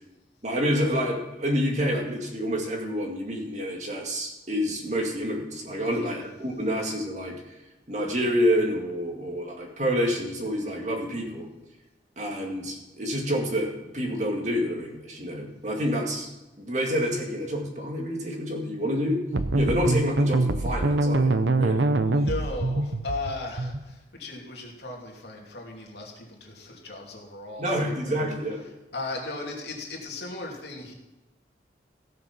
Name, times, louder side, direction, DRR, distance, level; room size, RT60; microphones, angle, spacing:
voice 1, 0.4-7.6 7.9-11.5 12.2-16.3 16.6-19.2 19.5-21.9 27.6-28.6, equal, 40° right, 1 dB, 2.2 m, -28 dB
voice 2, 5.8-6.2 22.1-28.2 28.9-30.9, left 2 dB, 70° left, -1 dB, 2.9 m, -37 dB
sound 1, 19.3-23.9, right 2 dB, 85° right, 0.8 m, -24 dB
16.0 x 6.8 x 6.0 m, 1.1 s
head